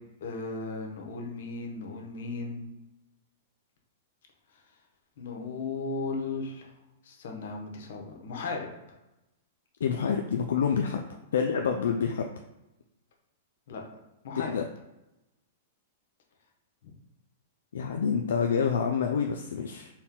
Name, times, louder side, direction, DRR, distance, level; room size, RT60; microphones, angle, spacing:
voice 1, 0.2-2.7 5.2-6.7 7.0-8.7 13.7-13.8 14.2-14.5 16.8-16.9, left 3 dB, 70° left, 1 dB, 0.9 m, -36 dB
voice 2, 9.8-11.0 11.3-12.3 14.4-14.6 17.7-19.9, left 6 dB, 90° left, 4 dB, 0.3 m, -27 dB
4.2 x 2.2 x 3.6 m, 0.96 s
supercardioid pair, 155°, 0 cm